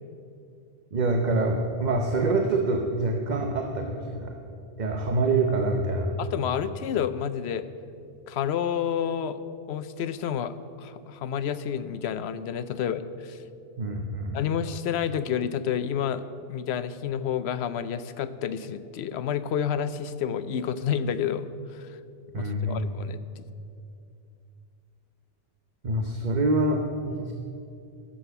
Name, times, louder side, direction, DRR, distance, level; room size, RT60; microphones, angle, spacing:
voice 1, 0.9-4.4 4.8-6.1 13.8-14.4 22.3-22.8 25.8-27.3, right 2 dB, 45° right, 3 dB, 0.9 m, -26 dB
voice 2, 6.2-7.6 8.3-9.4 9.7-10.5 10.8-13.4 14.3-16.2 16.5-21.9 22.4-23.4, left 8 dB, 80° left, 13 dB, 0.9 m, -29 dB
12.5 x 7.2 x 6.9 m, 2.5 s
omnidirectional pair, 1.1 m